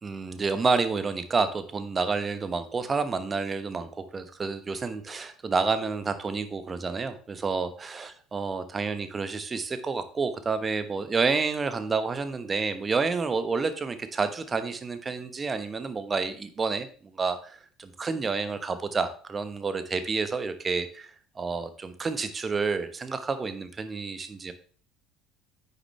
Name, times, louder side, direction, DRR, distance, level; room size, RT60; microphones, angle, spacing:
voice 1, 0.0-24.5, right 4 dB, 25° right, 10 dB, 1.0 m, -29 dB
9.3 x 6.8 x 3.2 m, 0.42 s
figure-of-eight pair, 60°, 0 cm